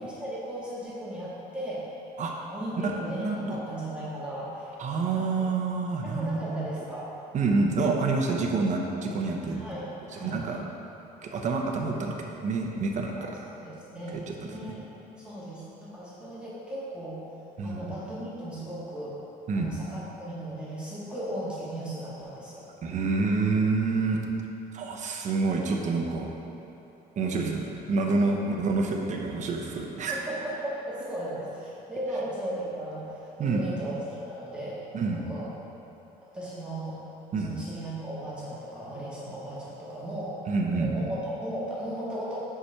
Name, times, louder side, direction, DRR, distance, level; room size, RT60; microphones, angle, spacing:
voice 1, 0.0-1.8 2.5-4.8 5.1-5.3 6.0-7.1 9.4-10.4 13.4-14.9 15.2-17.2 17.6-19.2 19.5-22.7 27.2-27.6 28.4-28.5 30.1-34.8 35.1-35.5 36.3-37.0 37.4-40.4 40.7-42.4, right 1 dB, 5° right, -9 dB, 1.6 m, -36 dB
voice 2, 3.2-3.6 4.8-6.7 7.3-9.6 10.1-10.6 11.2-13.3 14.1-14.3 17.6-17.8 19.5-19.7 22.8-24.2 24.7-26.3 27.2-30.2 33.4-33.6 34.9-35.2 37.3-37.5 40.5-41.1, right 3 dB, 45° right, 1 dB, 0.8 m, -27 dB
5.3 x 5.0 x 5.7 m, 2.9 s
cardioid pair, 110°, 17 cm